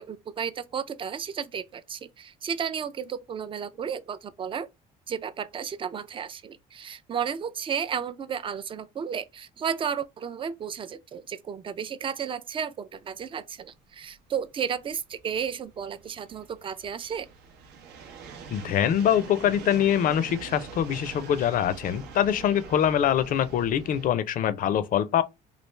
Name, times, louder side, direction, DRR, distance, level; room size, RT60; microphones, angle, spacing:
voice 1, 0.0-4.7 5.1-17.3, right 7 dB, 30° right, 0.4 m, -33 dB
sound 1, 13.2-24.1, right 5 dB, 80° right, 0.7 m, -44 dB
voice 2, 18.5-25.2, left 9 dB, 55° left, 0.4 m, -24 dB
3.2 x 2.4 x 3.1 m
cardioid pair, 110°, 17 cm